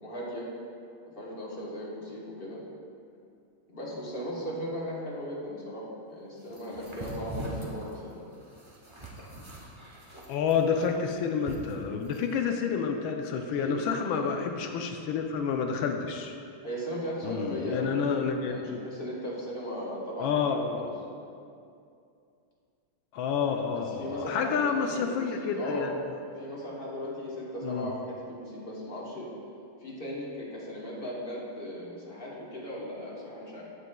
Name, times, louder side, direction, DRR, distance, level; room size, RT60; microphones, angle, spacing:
voice 1, 0.0-0.5 1.2-2.6 3.7-8.2 13.5-14.6 16.6-20.9 23.7-25.9 26.4-29.3 29.8-33.6, equal, 35° left, -5 dB, 0.9 m, -37 dB
sound 1, 6.5-12.3, right 1 dB, 50° right, 0.3 m, -42 dB
voice 2, 10.3-16.4 17.2-18.9 20.2-20.9 23.1-25.9 27.6-27.9, left 6 dB, 75° left, 4 dB, 1.3 m, -29 dB
15.0 x 5.0 x 2.2 m, 2.5 s
omnidirectional pair, 2.3 m